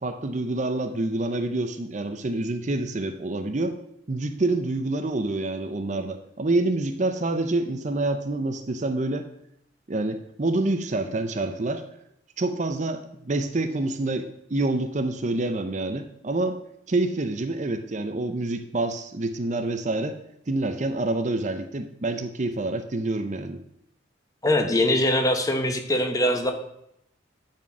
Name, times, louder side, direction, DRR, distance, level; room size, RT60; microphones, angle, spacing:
voice 1, 0.0-3.8 4.1-9.3 9.9-11.8 12.4-16.6 16.9-20.2 20.5-23.6, right 2 dB, 40° right, 8 dB, 0.6 m, -27 dB
voice 2, 24.4-26.5, left 1 dB, 20° left, 5 dB, 0.9 m, -22 dB
10.5 x 4.4 x 6.0 m, 0.77 s
head